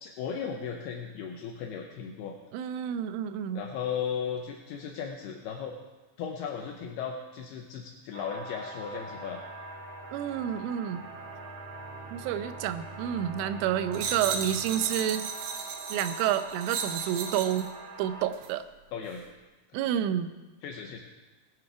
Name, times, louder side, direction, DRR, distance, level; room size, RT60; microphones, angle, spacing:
voice 1, 0.0-2.4 3.5-5.8 6.2-9.4 18.9-19.2 20.6-21.0, left 7 dB, 80° left, 2 dB, 2.4 m, -36 dB
voice 2, 2.5-3.7 10.1-11.1 12.1-15.3 15.9-17.7 18.0-18.6 19.7-20.3, right 10 dB, 90° right, 11 dB, 3.2 m, -29 dB
sound 1, 8.1-18.3, right 2 dB, 45° right, 2.3 m, -44 dB
sound 2, 8.4-15.2, right 2 dB, 40° left, 3.6 m, -49 dB
sound 3, 13.9-17.7 18.3-18.5, right 6 dB, 70° right, 2.8 m, -35 dB
20.0 x 9.6 x 4.7 m, 1.2 s
omnidirectional pair, 5.5 m